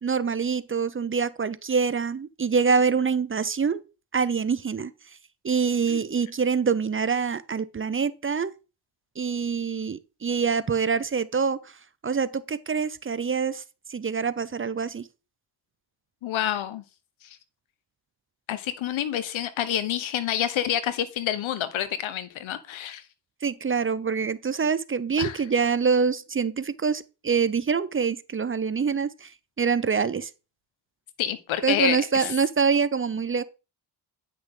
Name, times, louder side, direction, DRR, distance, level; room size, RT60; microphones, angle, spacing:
voice 1, 0.0-3.8 4.1-4.9 5.4-8.5 9.2-11.6 12.0-13.6 13.9-15.1 23.4-29.3 29.6-30.3 31.6-33.4, right 5 dB, 25° right, 0.6 m, -25 dB
voice 2, 16.2-16.8 17.2-17.4 18.5-23.0 25.2-25.4 31.2-32.3, left 11 dB, 80° left, 1.2 m, -28 dB
9.7 x 6.2 x 3.8 m
cardioid pair, 75°, 47 cm